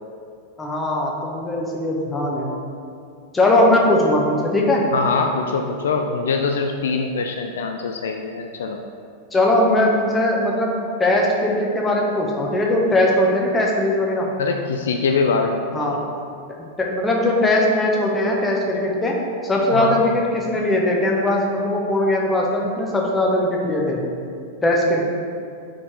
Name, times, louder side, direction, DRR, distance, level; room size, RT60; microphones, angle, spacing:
voice 1, 0.6-2.5 3.3-4.8 9.3-14.3 15.7-16.0 16.8-19.1 19.4-24.0 24.6-25.1, left 1 dB, 15° left, -2 dB, 1.0 m, -20 dB
voice 2, 4.9-8.8 14.4-16.0 19.7-20.0, left 4 dB, 65° left, 4 dB, 0.3 m, -23 dB
4.6 x 4.2 x 5.0 m, 2.4 s
figure-of-eight pair, 90°, 0 cm